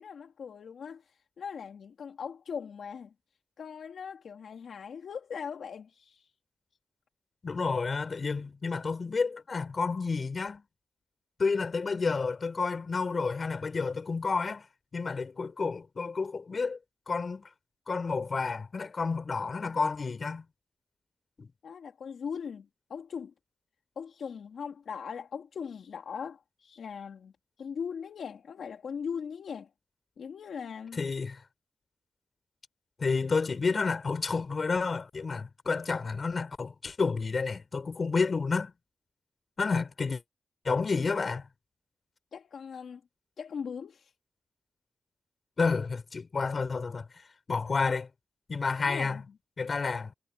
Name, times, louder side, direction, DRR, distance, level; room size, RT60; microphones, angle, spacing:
voice 1, 0.0-3.1 3.6-6.3 21.6-23.3 24.0-27.3 27.6-29.7 30.2-31.0 42.3-43.0 43.4-44.1 47.8-47.9 48.8-49.3, left 6 dB, 80° left, 2.8 m, -40 dB
voice 2, 7.4-10.6 11.4-14.6 14.9-16.8 17.1-17.5 17.9-20.4 21.4-21.5 31.0-31.4 33.0-38.7 39.6-40.2 40.6-41.5 45.6-47.1 47.5-48.1 48.5-49.2 49.6-50.1, left 4 dB, 50° left, 4.9 m, -30 dB
cardioid pair, 75°, 0 cm